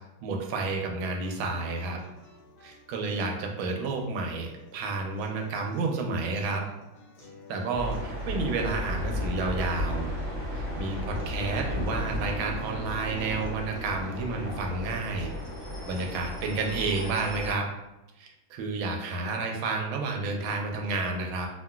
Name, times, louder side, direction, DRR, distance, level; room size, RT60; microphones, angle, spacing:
voice 1, 0.2-2.0 2.6-6.6 7.5-10.1 10.5-15.3 15.8-17.7 18.2-21.5, right 3 dB, 80° right, 2 dB, 1.4 m, -31 dB
sound 1, 1.2-17.2, left 2 dB, 65° left, 1.3 m, -52 dB
sound 2, 7.7-17.5, left 1 dB, 65° right, 0.7 m, -34 dB
3.7 x 2.2 x 2.3 m, 0.97 s
omnidirectional pair, 2.2 m